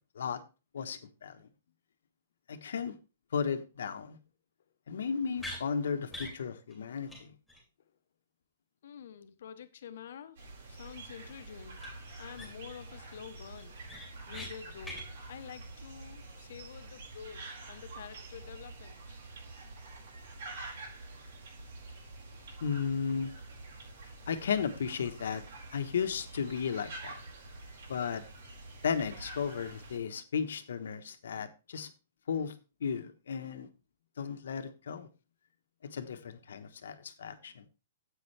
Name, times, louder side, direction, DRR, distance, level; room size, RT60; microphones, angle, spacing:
voice 1, 0.7-1.5 2.5-2.9 3.3-4.2 4.9-7.3 22.6-23.3 24.3-25.5 25.7-27.2 27.9-28.2 28.8-31.9 32.3-32.5 32.8-33.7 34.2-35.1 35.8-37.6, left 6 dB, 85° left, 1.2 m, -34 dB
sound 1, 5.4-5.6 6.1-6.4 6.7-6.8 7.1-7.2 7.5-7.6 11.8-11.9 12.3-12.7 13.1-13.2 13.6-14.5 14.8-15.0, left 1 dB, ahead, 3.0 m, -42 dB
voice 2, 8.8-10.4 10.7-11.8 12.2-13.8 14.3-19.2, left 8 dB, 65° left, 1.1 m, -48 dB
sound 2, 10.4-30.0, right 2 dB, 65° right, 5.0 m, -47 dB
9.9 x 8.4 x 3.4 m
hypercardioid pair, 165°, 0 cm